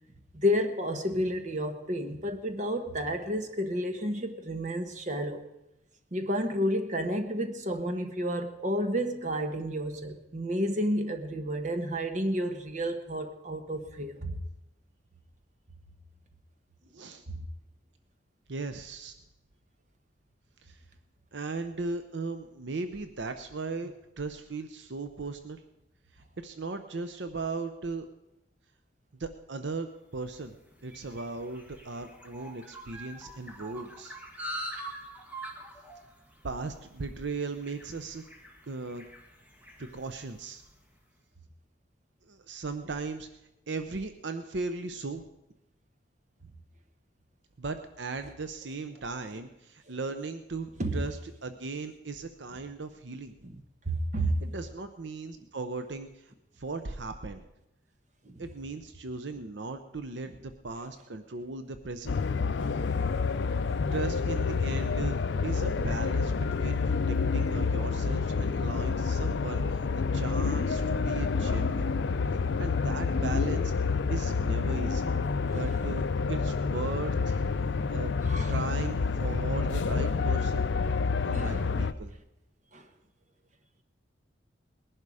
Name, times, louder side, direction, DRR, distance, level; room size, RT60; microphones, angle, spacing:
voice 1, 0.3-5.4 6.1-14.4 17.3-17.4 50.8-51.0 53.4-53.5 53.9-54.4 58.2-58.4 63.0-63.9 78.2-78.5 81.3-81.7 82.7-82.8, equal, 40° right, 7 dB, 1.1 m, -31 dB
voice 2, 16.9-17.2 18.5-19.2 20.6-20.8 21.3-25.6 26.1-28.1 29.2-29.9 30.1-30.5 30.8-34.2 36.4-38.2 38.7-39.1 39.8-40.6 42.2-43.3 43.7-45.2 46.4-46.5 47.6-50.7 50.9-53.3 54.4-57.4 58.4-62.2 63.9-65.2 65.4-69.9 70.1-71.9 72.6-73.7 74.1-75.1 75.5-77.4 77.9-78.2 78.5-80.7 81.2-82.1, right 3 dB, 70° right, 8 dB, 0.7 m, -37 dB
sound 1, 30.2-40.8, right 1 dB, 10° right, 1.5 m, -45 dB
sound 2, 62.1-81.9, left 4 dB, 70° left, 0.5 m, -28 dB
20.0 x 11.0 x 4.9 m, 0.91 s
head